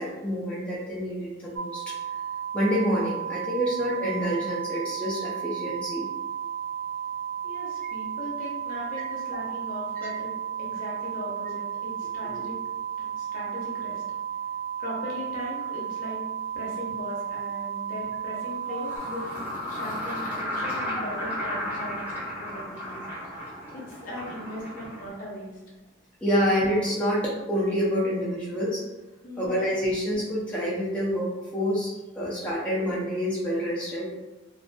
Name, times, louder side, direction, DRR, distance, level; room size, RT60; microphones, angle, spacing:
voice 1, 0.0-1.9 2.5-6.1 10.0-10.1 12.2-12.4 18.7-18.8 26.2-28.8 29.4-34.1, equal, 5° left, -8 dB, 0.4 m, -27 dB
sound 1, 1.6-19.0, right 8 dB, 90° right, 0.4 m, -33 dB
voice 2, 7.4-10.3 10.6-12.6 13.0-14.0 14.8-16.2 16.5-19.4 19.7-23.4 23.7-25.6 29.2-29.5, left 1 dB, 45° left, -4 dB, 0.7 m, -38 dB
sound 2, 16.7-16.8 18.4-25.1, left 1 dB, 10° right, 0.8 m, -34 dB
2.5 x 2.5 x 2.2 m, 1.1 s
head